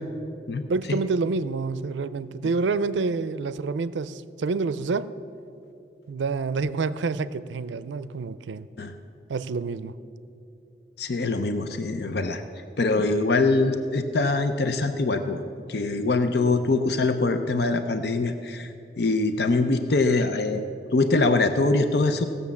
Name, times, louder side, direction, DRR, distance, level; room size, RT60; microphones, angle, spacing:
voice 1, 0.7-5.1 6.1-8.7 9.3-9.9, right 4 dB, 90° right, 0.4 m, -28 dB
voice 2, 11.0-12.4 12.8-15.4 15.7-18.7 19.0-20.6 20.9-22.2, left 3 dB, 60° left, 0.6 m, -23 dB
17.0 x 6.9 x 7.1 m
head